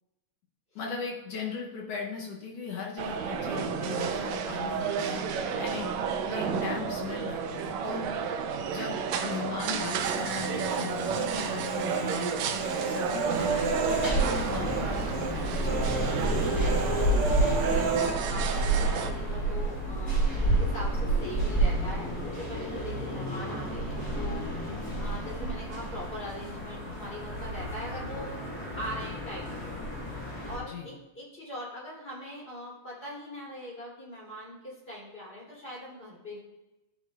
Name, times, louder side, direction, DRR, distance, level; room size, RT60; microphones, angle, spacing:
voice 1, 0.8-5.9 6.3-8.3 8.7-16.2 30.7-30.9, left 6 dB, 70° left, -1 dB, 1.7 m, -38 dB
sound 1, 3.0-19.1, right 6 dB, 75° right, 1.8 m, -32 dB
Human voice, 10.1-11.3 11.6-14.9 15.1-15.3 15.6-18.1, right 4 dB, 60° right, 2.0 m, -31 dB
sound 2, 13.4-30.6, right 1 dB, 5° left, 2.5 m, -30 dB
voice 2, 17.6-28.3 28.8-29.7 30.5-36.4, left 1 dB, 20° left, -6 dB, 3.0 m, -41 dB
13.5 x 6.1 x 2.4 m, 0.99 s
omnidirectional pair, 3.3 m